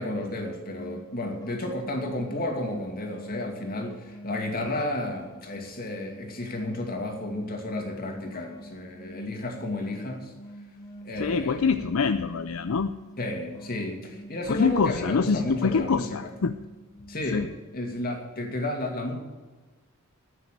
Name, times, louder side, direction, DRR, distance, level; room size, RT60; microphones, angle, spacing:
voice 1, 0.0-10.3 11.0-11.7 13.2-16.3 17.1-19.1, left 1 dB, 45° left, 2 dB, 2.5 m, -32 dB
sound 1, 0.8-18.4, right 1 dB, 15° left, 0.9 m, -46 dB
voice 2, 11.2-12.9 14.5-16.5 17.3-17.5, left 5 dB, 70° left, 10 dB, 0.5 m, -25 dB
9.6 x 8.9 x 8.9 m, 1.3 s
head